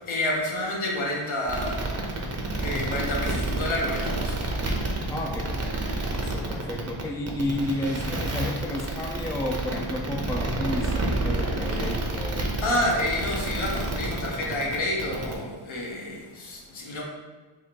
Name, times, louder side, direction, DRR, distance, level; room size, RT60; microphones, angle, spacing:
voice 1, 0.1-5.0 12.6-17.0, left 1 dB, 70° left, -2 dB, 1.2 m, -29 dB
sound 1, 1.5-15.3, right 2 dB, 30° right, 0.7 m, -29 dB
voice 2, 5.1-5.5 6.1-12.5, left 1 dB, 5° left, 0 dB, 0.4 m, -31 dB
3.6 x 2.6 x 4.5 m, 1.3 s
cardioid pair, 105°, 49 cm